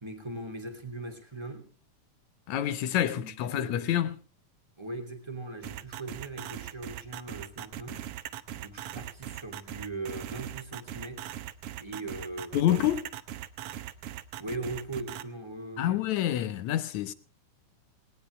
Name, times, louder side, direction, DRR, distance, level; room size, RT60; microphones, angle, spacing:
voice 1, 0.0-1.7 3.1-3.9 4.8-8.1 8.5-11.4 11.8-12.7 14.4-16.1, right 2 dB, 10° right, 2.4 m, -40 dB
voice 2, 2.5-4.2 12.5-13.1 15.8-17.1, left 12 dB, 70° left, 2.1 m, -27 dB
sound 1, 5.6-15.2, right 12 dB, 70° right, 1.4 m, -40 dB
19.5 x 18.0 x 3.3 m
omnidirectional pair, 3.7 m